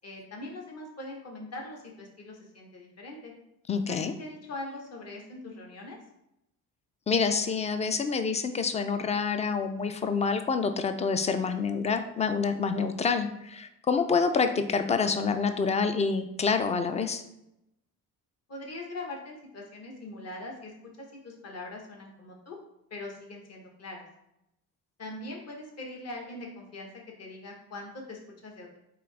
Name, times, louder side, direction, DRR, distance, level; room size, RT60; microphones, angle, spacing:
voice 1, 0.0-3.3 3.9-6.0 18.5-22.6 22.9-24.0 25.0-26.9 27.2-28.8, left 2 dB, 40° left, 0 dB, 1.1 m, -42 dB
voice 2, 3.7-4.1 7.1-17.2, left 5 dB, 20° left, 8 dB, 0.3 m, -27 dB
3.8 x 2.8 x 3.3 m, 0.83 s
supercardioid pair, 65°, 38 cm